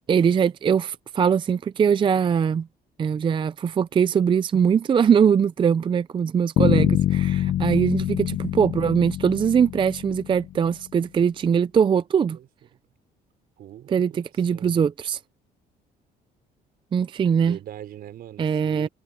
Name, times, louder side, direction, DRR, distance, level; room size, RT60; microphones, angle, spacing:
voice 1, 0.1-2.7 3.0-12.4 13.9-15.2 16.9-17.6 18.4-18.9, right 7 dB, 30° right, 0.4 m, -21 dB
Bass guitar, 6.6-10.6, left 12 dB, 55° left, 0.6 m, -24 dB
voice 2, 13.6-14.9 17.4-18.9, right 11 dB, 65° right, 4.8 m, -42 dB
cardioid pair, 110°, 17 cm